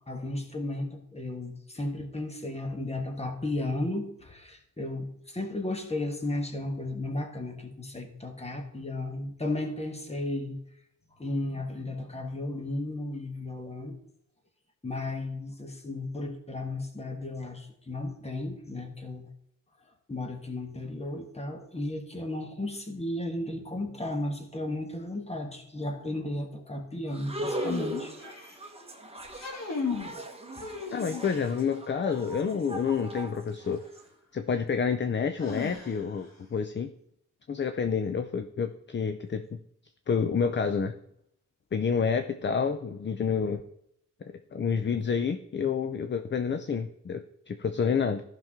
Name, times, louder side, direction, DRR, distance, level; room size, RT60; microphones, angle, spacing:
voice 1, 0.1-10.6 11.2-14.0 14.8-19.3 20.1-28.1, left 1 dB, 20° left, 4 dB, 1.4 m, -34 dB
sound 1, 27.1-34.0, right 1 dB, 20° right, 1.2 m, -39 dB
sound 2, 27.5-28.7 29.2-30.1 30.6-31.5 33.5-33.6 35.4-36.2, left 5 dB, 55° left, 2.1 m, -36 dB
voice 2, 30.9-33.8 34.3-36.9 37.5-39.6 40.1-40.9 41.7-43.6 44.5-48.2, left 6 dB, 35° left, 9 dB, 0.5 m, -29 dB
14.5 x 5.9 x 3.7 m, 0.75 s
wide cardioid pair, 140°, 32 cm